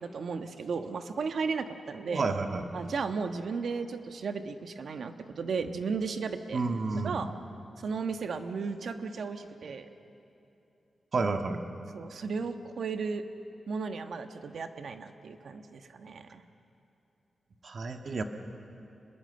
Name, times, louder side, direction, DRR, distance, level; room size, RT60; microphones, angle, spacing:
voice 1, 0.0-2.2 2.7-6.6 7.0-7.3 7.8-9.9 11.9-13.2 13.7-16.4, right 5 dB, 70° right, 7 dB, 1.3 m, -35 dB
voice 2, 2.0-2.7 6.5-7.3 11.1-11.6 17.6-18.2, right 3 dB, 50° right, 5 dB, 1.6 m, -30 dB
27.0 x 21.5 x 7.9 m, 2.8 s
wide cardioid pair, 115°, 0 cm